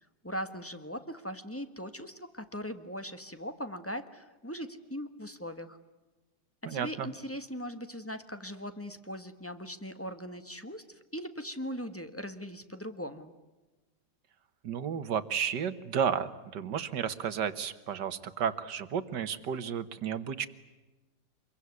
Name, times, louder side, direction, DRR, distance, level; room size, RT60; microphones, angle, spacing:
voice 1, 0.2-5.8 6.6-13.3, equal, 10° left, 9 dB, 1.5 m, -40 dB
voice 2, 6.7-7.1 14.6-20.5, right 8 dB, 80° right, 12 dB, 1.9 m, -32 dB
26.5 x 22.5 x 9.6 m, 1.1 s
omnidirectional pair, 1.8 m